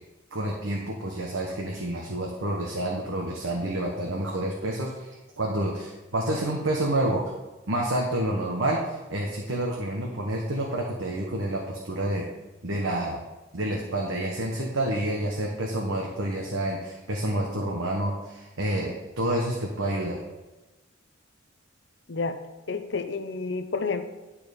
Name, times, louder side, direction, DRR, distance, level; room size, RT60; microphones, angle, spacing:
voice 1, 0.3-5.1 5.4-7.2 7.7-12.3 12.6-13.2 13.5-20.2, right 1 dB, 85° right, -1 dB, 1.2 m, -28 dB
voice 2, 22.7-24.1, left 4 dB, 60° left, 9 dB, 0.6 m, -30 dB
11.0 x 4.4 x 5.2 m, 1.1 s
head